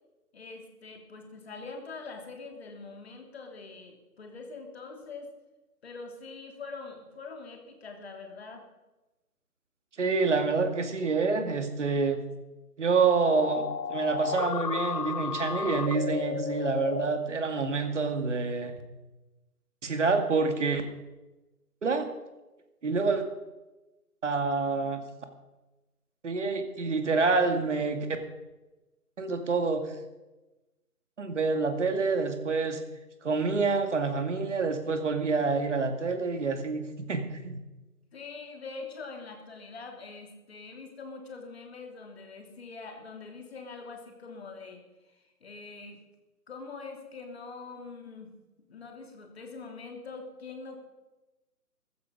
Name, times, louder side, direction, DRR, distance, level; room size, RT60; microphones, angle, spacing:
voice 1, 0.3-5.3 5.8-8.6 38.1-44.8 45.4-46.0 46.5-48.3 48.7-50.8, left 4 dB, 40° left, 3 dB, 3.2 m, -43 dB
voice 2, 10.0-12.2 12.8-18.7 19.8-20.8 21.8-22.1 22.8-23.2 24.2-25.0 26.2-28.1 29.2-29.8 31.2-32.8 33.2-36.8 37.1-37.6, right 4 dB, 50° right, 7 dB, 2.3 m, -27 dB
sound 1, 13.3-17.2, left 6 dB, 80° left, 0.9 m, -32 dB
15.0 x 14.5 x 5.3 m, 1.1 s
figure-of-eight pair, 150°, 46 cm